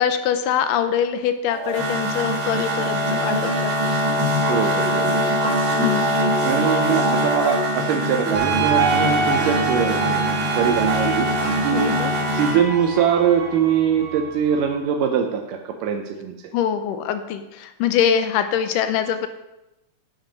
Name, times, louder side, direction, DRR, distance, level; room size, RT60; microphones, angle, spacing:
voice 1, 0.0-3.9 5.8-6.2 11.7-12.1 16.5-19.3, left 8 dB, 85° left, 9 dB, 2.3 m, -23 dB
sound 1, 1.5-12.6, equal, 45° right, 2.0 m, -23 dB
voice 2, 4.5-5.3 6.4-11.3 11.6-12.0 12.3-16.4, right 8 dB, 80° right, 4 dB, 2.3 m, -22 dB
sound 2, 8.3-14.8, right 5 dB, 65° right, 2.6 m, -25 dB
10.5 x 7.2 x 5.1 m, 0.95 s
omnidirectional pair, 3.8 m